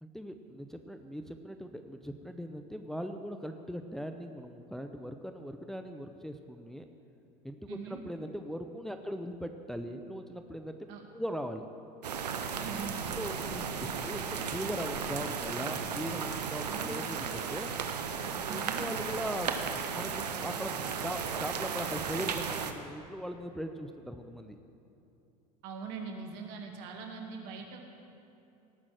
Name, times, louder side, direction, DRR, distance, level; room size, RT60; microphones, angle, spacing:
voice 1, 0.0-6.9 7.4-10.8 11.1-11.7 13.2-18.0 18.4-19.5 19.9-24.5, equal, ahead, 6 dB, 0.7 m, -40 dB
voice 2, 7.7-8.0 10.9-11.1 12.6-13.1 13.6-14.1 16.6-16.9 18.5-18.9 25.6-27.8, right 5 dB, 60° right, 2 dB, 2.2 m, -42 dB
sound 1, 12.0-22.7, right 6 dB, 90° right, 0.9 m, -35 dB
18.0 x 6.2 x 7.7 m, 2.8 s
hypercardioid pair, 85°, 20 cm